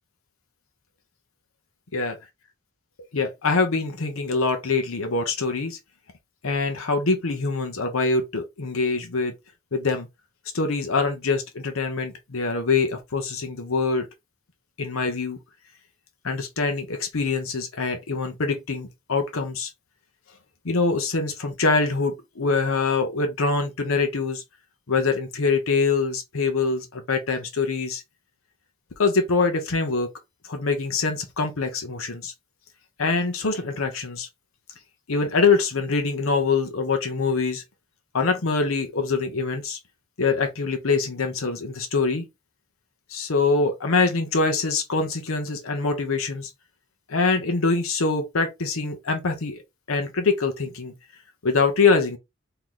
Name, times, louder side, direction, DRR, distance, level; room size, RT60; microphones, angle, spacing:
voice 1, 3.1-5.8 6.4-9.3 9.7-10.1 10.5-14.1 14.8-15.4 16.2-19.7 20.6-24.4 24.9-28.0 29.0-30.1 30.5-32.3 33.0-34.3 35.1-37.6 38.1-39.8 40.2-42.2 43.1-46.5 47.1-49.6 49.9-50.9 51.4-52.2, left 4 dB, 85° left, 0.8 m, -24 dB
3.1 x 2.9 x 3.8 m
head